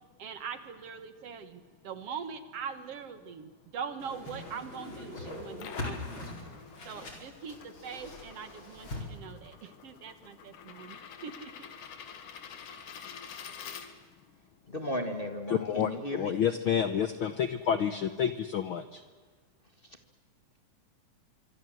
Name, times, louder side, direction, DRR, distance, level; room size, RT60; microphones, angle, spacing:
voice 1, 0.2-6.4 6.9-11.0 11.2-11.7, right 6 dB, 60° right, 11 dB, 2.3 m, -42 dB
Whoosh swoosh swish, 4.0-9.0, left 2 dB, 40° left, 5.3 m, -42 dB
sound 1, 5.3-14.3, left 7 dB, 85° left, 3.4 m, -48 dB
voice 2, 14.7-16.4 17.7-17.8 19.8-20.0, left 1 dB, 20° left, 6 dB, 1.7 m, -35 dB
voice 3, 15.5-19.0, left 8 dB, 65° left, 11 dB, 1.3 m, -29 dB
25.5 x 24.5 x 7.8 m, 1.5 s
omnidirectional pair, 3.4 m